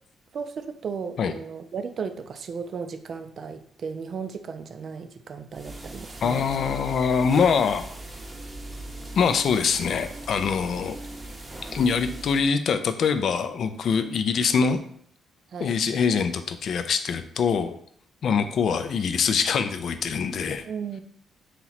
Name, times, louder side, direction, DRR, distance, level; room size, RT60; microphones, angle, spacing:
voice 1, 0.3-6.5 15.5-15.7 20.6-21.0, right 6 dB, 55° right, 8 dB, 0.4 m, -35 dB
sound 1, 5.5-12.5, right 1 dB, 20° right, 0.7 m, -39 dB
voice 2, 6.2-7.9 9.1-11.0 11.7-14.8 15.6-17.8 18.2-20.6, left 6 dB, 60° left, 9 dB, 0.4 m, -24 dB
2.9 x 2.9 x 4.0 m, 0.63 s
cardioid pair, 90°, 0 cm